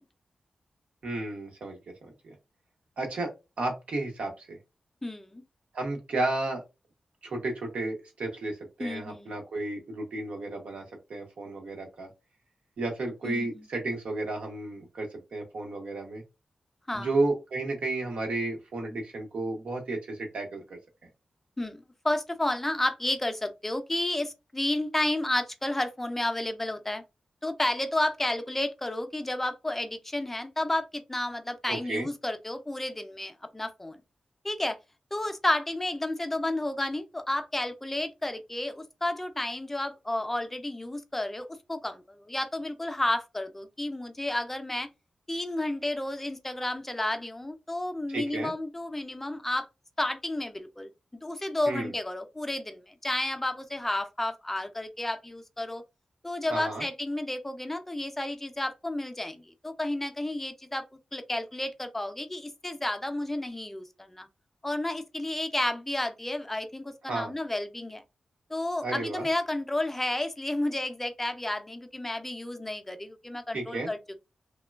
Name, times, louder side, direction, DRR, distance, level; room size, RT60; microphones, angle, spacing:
voice 1, 1.0-2.3 3.0-4.6 5.7-6.6 7.2-12.1 12.8-16.2 16.9-20.8 31.7-32.1 48.1-48.5 51.7-51.9 56.5-56.8 67.1-67.3 68.8-69.3 73.5-73.9, right 2 dB, 80° right, 0.9 m, -33 dB
voice 2, 5.0-5.4 8.8-9.4 13.2-13.6 16.9-17.1 21.6-27.0 27.4-34.0 34.4-34.8 35.1-44.9 45.3-49.7 50.0-50.9 51.2-55.8 56.2-60.9 61.1-64.3 64.6-68.0 68.5-74.0, left 1 dB, 10° left, 0.4 m, -31 dB
3.0 x 2.2 x 2.3 m
wide cardioid pair, 170°, 2 cm